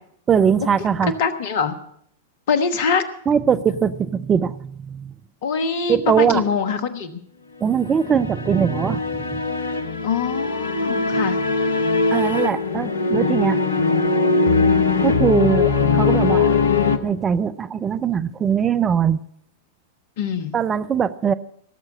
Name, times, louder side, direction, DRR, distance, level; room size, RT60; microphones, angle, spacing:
voice 1, 0.3-1.1 3.3-5.1 5.9-6.4 7.6-9.0 9.3-9.4 12.1-13.6 15.0-16.6 17.0-19.2 20.5-21.3, right 7 dB, 20° right, 14 dB, 0.5 m, -21 dB
voice 2, 1.0-1.7 2.5-3.0 5.4-7.2 10.0-11.4 20.2-20.5, left 5 dB, 50° left, 12 dB, 1.4 m, -23 dB
sound 1, 7.9-17.0, left 4 dB, 70° left, 1.0 m, -20 dB
17.5 x 7.5 x 8.7 m, 0.67 s
figure-of-eight pair, 95°, 0 cm